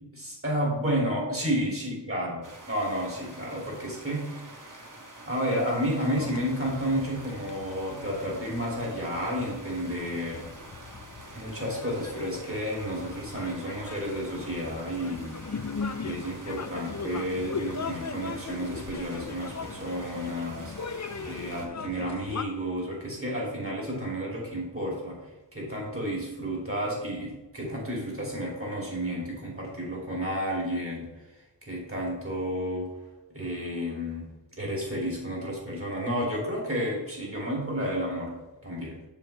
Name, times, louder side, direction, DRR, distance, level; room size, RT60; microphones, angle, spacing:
voice 1, 0.1-2.4 2.7-4.8 5.2-10.5 11.3-15.4 16.0-20.7 21.2-25.2 25.5-31.1 31.6-32.9 33.3-34.3 34.6-38.3 38.6-38.9, equal, 30° right, -3 dB, 2.7 m, -31 dB
sound 1, 2.4-21.7, right 2 dB, 45° right, 1.3 m, -47 dB
sound 2, 6.1-22.4, left 5 dB, 40° left, 0.5 m, -39 dB
7.1 x 7.0 x 3.4 m, 1.1 s
wide cardioid pair, 45°, 43 cm